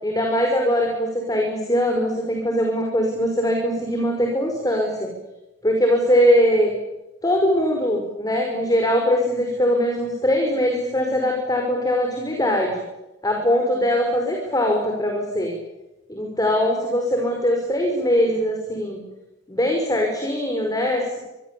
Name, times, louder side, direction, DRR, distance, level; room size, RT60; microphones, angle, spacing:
voice 1, 0.0-5.1 5.6-6.7 7.2-12.8 13.2-15.5 16.1-19.0 19.5-21.2, equal, 20° left, 2 dB, 5.6 m, -21 dB
28.0 x 23.5 x 8.6 m, 1.0 s
head